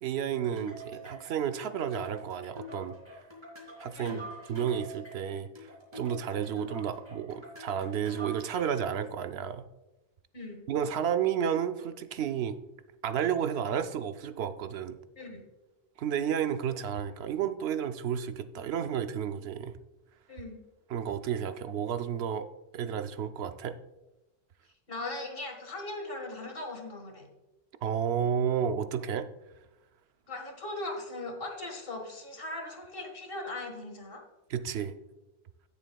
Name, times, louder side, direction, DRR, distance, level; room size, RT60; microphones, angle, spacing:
voice 1, 0.0-3.2 3.8-4.2 4.5-9.6 10.7-12.6 13.0-15.0 16.0-19.7 20.9-22.5 22.7-23.8 27.8-29.3 34.5-34.9, right 8 dB, 85° right, 10 dB, 0.9 m, -32 dB
sound 1, 0.6-8.9, left 1 dB, 25° right, 2.7 m, -46 dB
voice 2, 4.0-4.3 10.3-10.7 15.2-15.4 20.3-20.6 24.9-27.3 30.3-34.2, left 2 dB, 65° left, 3 dB, 1.8 m, -39 dB
17.0 x 6.9 x 2.3 m, 1.0 s
omnidirectional pair, 1.0 m